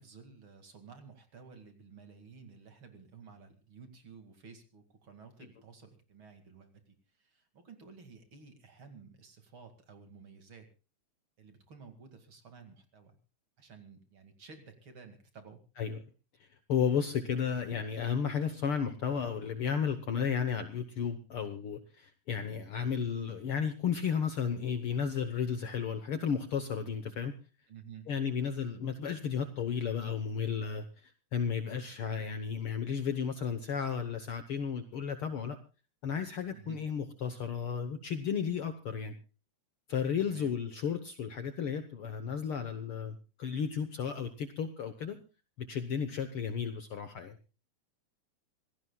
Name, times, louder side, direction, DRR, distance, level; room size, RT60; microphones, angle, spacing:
voice 1, 0.0-10.7 11.4-13.2 13.6-15.6 27.7-28.1 36.5-36.8 40.2-40.5, right 5 dB, 45° right, 7 dB, 2.8 m, -53 dB
voice 2, 16.4-27.3 28.1-35.6 36.0-39.1 39.9-45.2 45.6-47.4, left 7 dB, 60° left, 9 dB, 1.6 m, -33 dB
26.5 x 17.0 x 2.3 m, 0.33 s
omnidirectional pair, 3.4 m